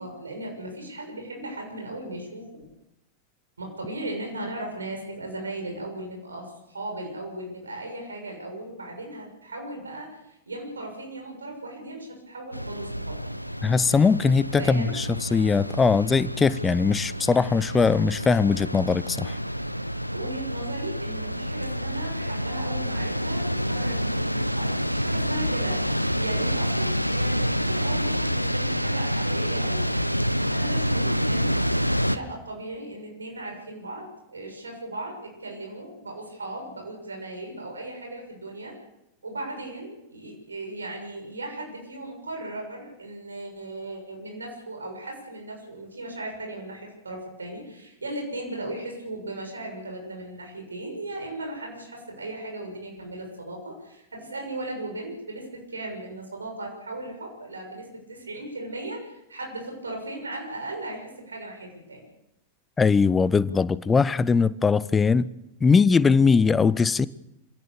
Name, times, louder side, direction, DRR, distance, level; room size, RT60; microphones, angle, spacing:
voice 1, 0.0-2.5 3.6-13.2 14.6-14.9 20.1-30.1 30.5-31.6 32.0-38.7 39.2-62.0, right 1 dB, 75° right, 2 dB, 6.8 m, -37 dB
sound 1, 12.5-32.2, equal, 90° left, 0.9 m, -28 dB
voice 2, 13.6-19.3 62.8-65.3 65.6-67.1, left 5 dB, 15° left, 18 dB, 0.8 m, -21 dB
26.0 x 17.5 x 7.0 m, 0.90 s
figure-of-eight pair, 90°, 0 cm